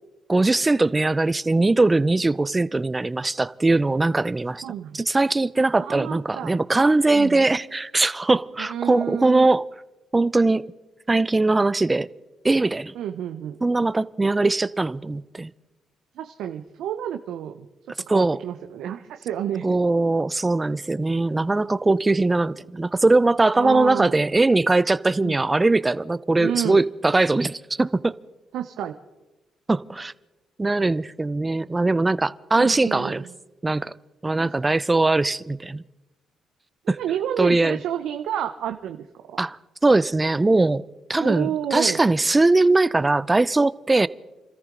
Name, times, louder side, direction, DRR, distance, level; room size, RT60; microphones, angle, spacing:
voice 1, 0.3-4.6 4.9-9.6 10.1-10.7 11.1-12.1 12.4-12.9 13.6-15.5 18.1-18.4 19.6-28.2 29.7-30.1 30.6-33.2 33.6-33.9 34.2-35.8 36.9-37.0 37.4-37.8 39.4-39.6 39.8-40.8 41.1-44.1, right 2 dB, 20° right, 0.4 m, -21 dB
voice 2, 4.6-5.0 5.8-6.6 7.1-7.5 8.6-9.5 12.9-13.6 16.2-17.7 18.0-19.6 23.6-24.2 25.2-25.4 26.4-26.8 28.5-29.0 32.5-33.3 34.4-34.5 36.8-39.1 41.2-42.0, right 10 dB, 80° right, 0.7 m, -30 dB
26.0 x 14.0 x 3.8 m
cardioid pair, 90°, 0 cm